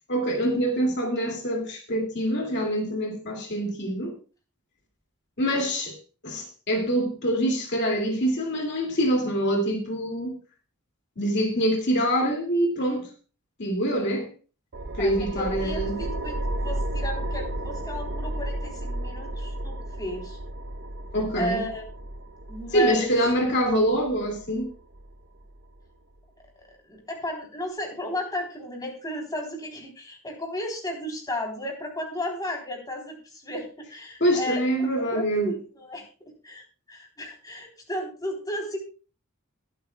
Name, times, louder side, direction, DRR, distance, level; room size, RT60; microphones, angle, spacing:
voice 1, 0.1-4.1 5.4-6.0 6.2-10.4 11.2-13.1 13.6-14.3 14.9-16.0 21.1-21.6 22.7-24.7 34.2-35.5, equal, 50° left, 2.5 m, -25 dB
sound 1, 14.7-25.8, right 1 dB, 50° right, 0.8 m, -33 dB
voice 2, 15.0-16.4 16.6-20.4 21.3-21.8 22.5-23.3 26.9-36.1 36.4-38.8, left 1 dB, 15° left, 3.5 m, -34 dB
22.0 x 9.1 x 2.3 m
head